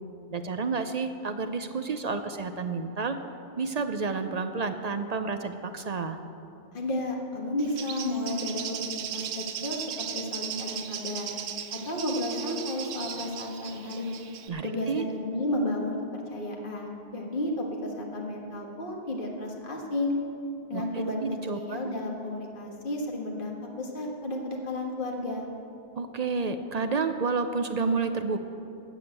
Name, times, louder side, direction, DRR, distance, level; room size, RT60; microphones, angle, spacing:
voice 1, 0.3-3.2 3.6-6.2 14.5-15.0 20.7-21.8 26.0-28.4, right 4 dB, 50° right, 8 dB, 0.5 m, -30 dB
voice 2, 6.7-11.3 11.7-14.2 14.6-16.0 16.3-20.1 20.7-21.2 21.5-25.5, left 1 dB, 45° left, 0 dB, 1.7 m, -32 dB
Bird, 7.6-14.5, right 8 dB, 80° right, 1.1 m, -37 dB
12.0 x 7.2 x 8.0 m, 2.7 s
omnidirectional pair, 1.3 m